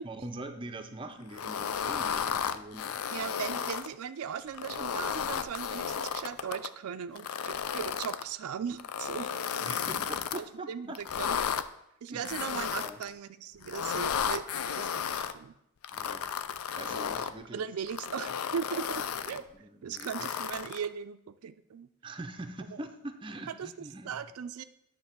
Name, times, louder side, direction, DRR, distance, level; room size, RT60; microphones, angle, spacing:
voice 1, 0.0-3.2 9.6-11.0 12.1-12.5 12.8-13.0 15.9-16.3 16.7-17.6 18.2-18.4 19.5-20.3 22.0-24.3, right 2 dB, 25° right, 6 dB, 0.5 m, -43 dB
sound 1, 1.3-3.9 4.5-6.7 7.2-8.2 8.8-10.4 11.0-11.6 12.3-13.1 13.6-15.3 15.8-17.3 17.9-19.4 20.0-20.9, left 7 dB, 80° left, 0.4 m, -33 dB
voice 2, 3.1-9.3 10.4-11.4 12.0-15.5 17.5-19.4 19.8-21.9 23.6-23.7 24.1-24.6, right 7 dB, 85° right, 10 dB, 0.4 m, -38 dB
9.3 x 3.3 x 6.6 m, 0.78 s
head